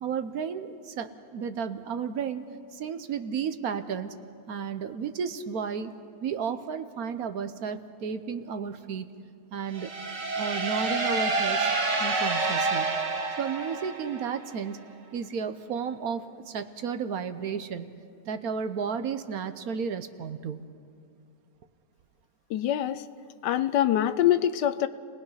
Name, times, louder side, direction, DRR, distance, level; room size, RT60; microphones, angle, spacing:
voice 1, 0.0-2.4 2.7-4.1 4.5-5.9 6.2-9.1 9.5-9.9 10.4-11.7 12.0-12.9 13.4-14.8 15.1-18.0 18.3-20.7, right 6 dB, 65° right, 10 dB, 1.2 m, -33 dB
sound 1, 9.7-14.4, right 3 dB, 85° right, 2.4 m, -28 dB
voice 2, 22.5-23.0 23.4-24.9, left 11 dB, 80° left, 13 dB, 1.3 m, -24 dB
30.0 x 19.0 x 5.6 m, 2.4 s
omnidirectional pair, 1.8 m